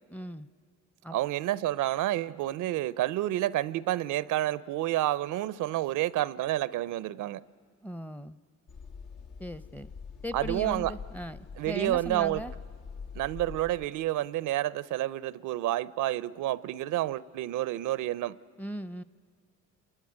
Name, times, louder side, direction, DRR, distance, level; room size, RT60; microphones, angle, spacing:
voice 1, 0.1-0.5 1.0-1.2 7.8-8.4 9.4-9.9 10.2-11.4 11.6-12.5 18.6-19.0, equal, 5° left, 0.6 m, -38 dB
voice 2, 1.1-7.4 10.3-10.9 11.6-12.4 13.1-18.4, right 14 dB, 85° right, 0.6 m, -29 dB
sound 1, 8.7-13.9, left 5 dB, 80° left, 1.7 m, -44 dB
26.5 x 22.0 x 9.5 m
cardioid pair, 90°, 30 cm